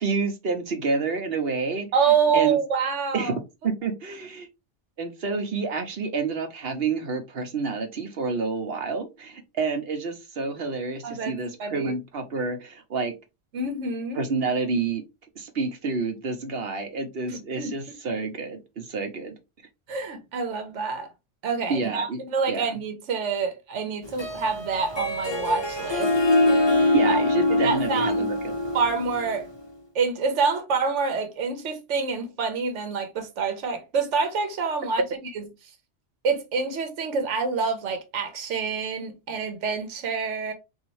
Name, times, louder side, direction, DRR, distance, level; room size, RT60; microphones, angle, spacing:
voice 1, 0.0-1.9 2.3-2.6 3.1-3.3 3.6-4.5 5.0-13.1 14.1-15.0 15.4-19.3 21.7-22.2 22.5-22.6 26.9-28.5, right 4 dB, 60° right, 1.0 m, -29 dB
voice 2, 1.9-3.3 11.0-11.3 11.6-11.9 13.5-14.2 17.3-17.7 19.9-21.1 21.4-26.1 27.1-27.2 27.5-28.3 28.7-29.5 29.9-35.4 36.2-40.5, right 5 dB, 80° right, 1.2 m, -27 dB
Harp, 24.1-29.6, left 2 dB, 30° left, 0.6 m, -24 dB
4.0 x 2.7 x 3.0 m
omnidirectional pair, 1.2 m